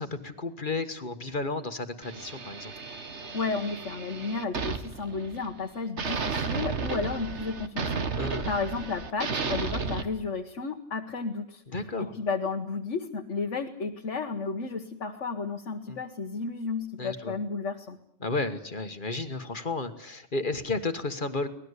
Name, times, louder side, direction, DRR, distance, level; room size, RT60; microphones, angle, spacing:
voice 1, 0.0-2.7 8.2-8.5 11.7-12.1 15.9-16.0 17.0-17.3 18.2-21.5, left 3 dB, 45° left, 8 dB, 1.7 m, -32 dB
sound 1, 2.0-5.6 6.0-10.0, right 5 dB, 70° right, 1.8 m, -33 dB
voice 2, 3.3-11.6 12.0-18.0, left 4 dB, 75° left, 2 dB, 1.6 m, -33 dB
25.0 x 19.0 x 8.3 m, 0.69 s
omnidirectional pair, 1.3 m